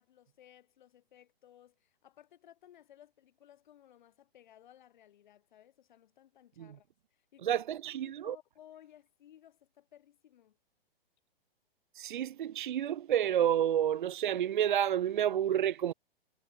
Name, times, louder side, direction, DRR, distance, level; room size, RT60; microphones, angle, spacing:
voice 1, 0.0-7.6 8.0-10.6, left 11 dB, 50° left, 6.6 m, -59 dB
voice 2, 7.4-8.4 11.9-15.9, right 10 dB, 55° right, 0.6 m, -30 dB
figure-of-eight pair, 120°, 30 cm